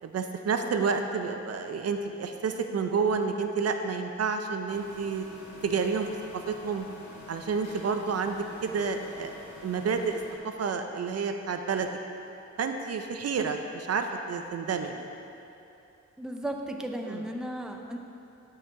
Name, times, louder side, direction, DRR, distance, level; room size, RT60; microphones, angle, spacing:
voice 1, 0.0-5.2 5.6-6.9 7.3-9.3 9.6-10.2 10.4-11.9 12.6-15.1 17.1-17.2, right 5 dB, 60° right, 6 dB, 0.5 m, -30 dB
sound 1, 4.7-10.4, left 2 dB, 70° left, 1.8 m, -48 dB
voice 2, 16.2-18.0, right 1 dB, ahead, 3 dB, 0.6 m, -35 dB
12.0 x 4.6 x 3.7 m, 2.8 s
cardioid pair, 90°, 29 cm